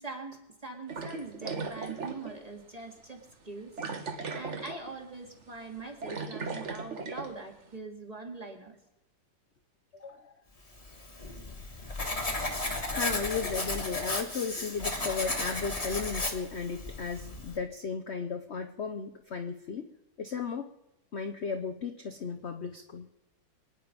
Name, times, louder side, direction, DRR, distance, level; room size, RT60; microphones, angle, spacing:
voice 1, 0.0-8.8, right 3 dB, 20° right, 2 dB, 2.2 m, -43 dB
sound 1, 0.9-2.4 2.8-2.9 3.8-4.9 5.2-5.4 5.8-7.3, right 4 dB, 40° right, 1.5 m, -37 dB
voice 2, 9.9-10.3 12.9-19.8 20.2-20.7 21.1-23.1, left 5 dB, 50° left, 5 dB, 0.9 m, -35 dB
Writing, 10.8-17.6, left 2 dB, 20° left, 1.6 m, -34 dB
25.0 x 9.6 x 5.2 m, 0.89 s
omnidirectional pair, 2.0 m